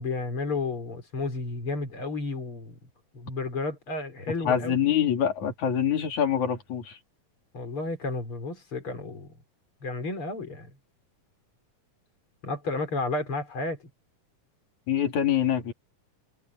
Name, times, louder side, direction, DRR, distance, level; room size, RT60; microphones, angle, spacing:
voice 1, 0.0-2.7 3.1-4.7 7.5-9.3 9.8-10.7 12.4-13.8, left 3 dB, 40° left, 5.4 m, -32 dB
voice 2, 4.4-7.0 14.9-15.7, left 9 dB, 60° left, 4.6 m, -25 dB
omnidirectional pair, 3.9 m